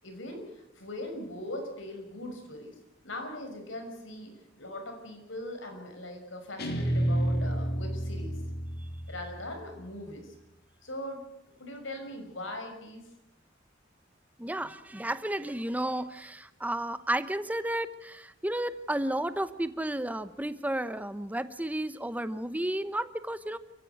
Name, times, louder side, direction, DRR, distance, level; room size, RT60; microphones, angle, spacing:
voice 1, 0.0-2.8 3.0-8.4 9.1-10.3 10.8-11.3 11.6-13.0, left 1 dB, 75° left, 4 dB, 6.0 m, -40 dB
Guitar, 6.6-9.8, right 1 dB, 55° left, 3.2 m, -30 dB
voice 2, 14.4-23.6, right 1 dB, 10° right, 12 dB, 1.0 m, -32 dB
29.0 x 15.5 x 8.1 m, 0.88 s
head